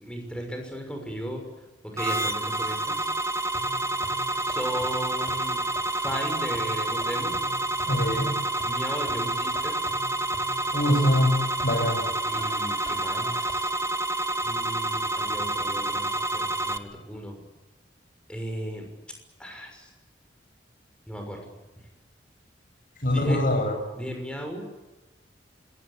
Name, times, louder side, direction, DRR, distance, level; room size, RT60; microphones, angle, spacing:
voice 1, 0.0-1.5 1.8-3.1 4.5-5.6 6.0-7.4 8.6-9.8 12.3-13.7 14.4-17.4 18.3-18.9 19.4-19.9 21.1-21.4 23.1-23.4 24.0-24.7, equal, 5° left, 3 dB, 6.4 m, -35 dB
sound 1, 2.0-16.8, right 2 dB, 15° right, 1.4 m, -28 dB
sound 2, 3.5-13.5, left 1 dB, 30° left, 5.4 m, -44 dB
voice 2, 7.8-8.3 10.7-12.1 23.0-23.8, left 1 dB, 50° left, 2 dB, 7.7 m, -23 dB
26.5 x 22.5 x 8.5 m, 1.1 s
head